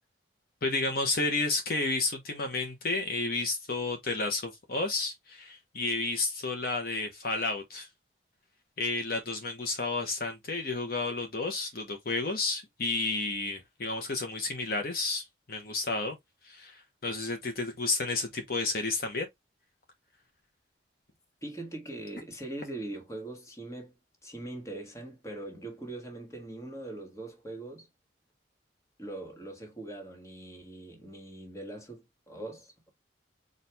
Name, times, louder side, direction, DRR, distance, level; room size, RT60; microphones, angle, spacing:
voice 1, 0.6-7.9 8.8-16.2 16.4-19.3, left 3 dB, 50° left, 0.8 m, -31 dB
voice 2, 21.4-23.9 24.2-27.9 29.0-32.9, right 2 dB, 15° left, 1.4 m, -41 dB
4.3 x 2.5 x 3.2 m
head